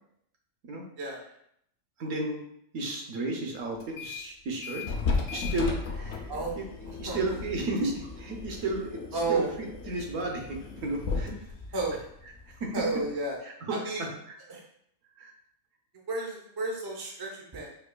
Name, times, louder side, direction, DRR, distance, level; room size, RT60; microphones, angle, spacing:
voice 1, 2.0-2.4 2.7-6.3 6.6-6.7 7.0-11.4 12.5-12.8 13.4-14.4 15.2-15.3, right 2 dB, 70° right, 1 dB, 1.0 m, -33 dB
sound 1, 3.8-4.3 4.6-13.1, left 4 dB, 60° left, 0.7 m, -35 dB
voice 2, 9.1-9.5 11.7-12.0 12.7-13.4 13.8-14.0 14.5-14.6 16.1-17.7, right 3 dB, 35° right, -1 dB, 0.3 m, -31 dB
4.6 x 2.6 x 2.2 m, 0.73 s
omnidirectional pair, 1.4 m